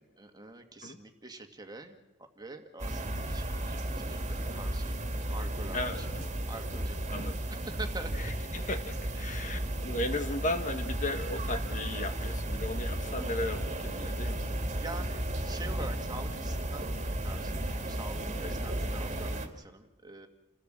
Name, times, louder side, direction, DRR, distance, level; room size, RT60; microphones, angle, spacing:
voice 1, 0.0-5.0 5.3-6.1 6.5-7.2 7.5-8.3 9.1-9.4 14.8-20.3, right 2 dB, 20° right, 5 dB, 2.0 m, -45 dB
sound 1, 2.8-19.5, right 1 dB, 35° right, 2.3 m, -34 dB
voice 2, 5.7-6.3 7.1-7.4 8.2-14.4 18.4-18.5, left 2 dB, 40° left, 7 dB, 1.5 m, -36 dB
29.5 x 16.5 x 7.6 m, 1.1 s
head